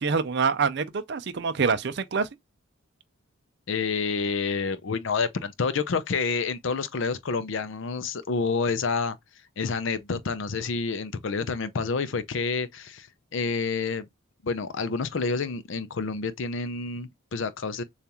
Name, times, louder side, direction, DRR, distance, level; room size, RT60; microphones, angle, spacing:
voice 1, 0.0-2.3, right 5 dB, 55° right, 0.5 m, -26 dB
voice 2, 3.7-9.2 9.6-13.1 13.3-14.1 14.4-17.8, left 4 dB, 60° left, 0.5 m, -28 dB
6.9 x 2.4 x 2.9 m
head